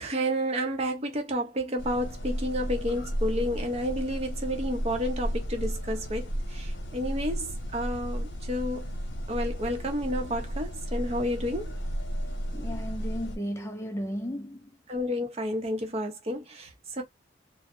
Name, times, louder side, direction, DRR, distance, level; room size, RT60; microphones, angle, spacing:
voice 1, 0.0-8.9 9.3-11.8 14.9-17.0, equal, 35° right, 0.6 m, -31 dB
sound 1, 1.8-13.4, equal, 85° left, 0.8 m, -33 dB
voice 2, 12.5-14.7, equal, 15° left, 0.3 m, -34 dB
2.1 x 2.0 x 2.9 m
head